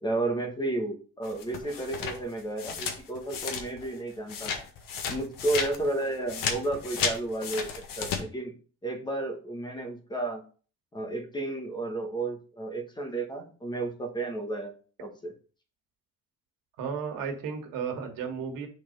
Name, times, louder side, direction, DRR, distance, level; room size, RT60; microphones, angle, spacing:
voice 1, 0.0-4.6 5.1-8.5 8.8-10.4 10.9-14.7 15.0-15.3, right 2 dB, 15° left, 5 dB, 1.2 m, -32 dB
sound 1, 1.2-4.0 4.3-8.2, left 6 dB, 85° left, 1.6 m, -33 dB
voice 2, 16.8-18.7, right 6 dB, 90° right, 4 dB, 1.9 m, -33 dB
6.6 x 4.2 x 5.3 m, 0.39 s
cardioid pair, 165°, 33 cm